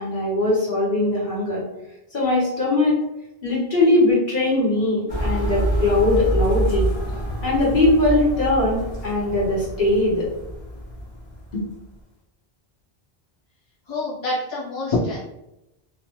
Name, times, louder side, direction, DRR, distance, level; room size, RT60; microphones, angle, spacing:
voice 1, 0.0-1.6 2.1-3.0 3.4-6.9 7.4-10.3, left 2 dB, 55° left, -6 dB, 1.2 m, -20 dB
sound 1, 5.1-11.6, right 1 dB, 10° left, 1.2 m, -26 dB
voice 2, 13.9-15.2, left 2 dB, 30° left, -8 dB, 0.8 m, -25 dB
3.0 x 2.1 x 2.9 m, 0.89 s
omnidirectional pair, 1.0 m